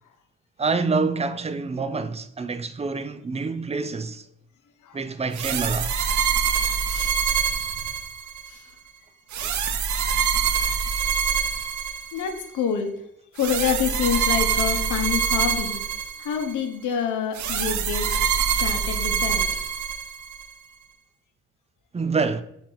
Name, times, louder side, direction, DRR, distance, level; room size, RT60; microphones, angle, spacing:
voice 1, 0.6-4.2 4.9-5.9 9.4-9.5 21.9-22.4, right 4 dB, 20° right, 0.6 m, -26 dB
sound 1, 5.3-8.5 9.3-12.4 13.4-16.5 17.3-20.4, right 7 dB, 70° right, 0.8 m, -25 dB
voice 2, 9.7-10.0 12.1-12.9 13.3-15.8 16.2-18.1 18.6-19.4, left 7 dB, 85° left, 1.2 m, -27 dB
7.1 x 2.9 x 5.7 m
cardioid pair, 90°, 30 cm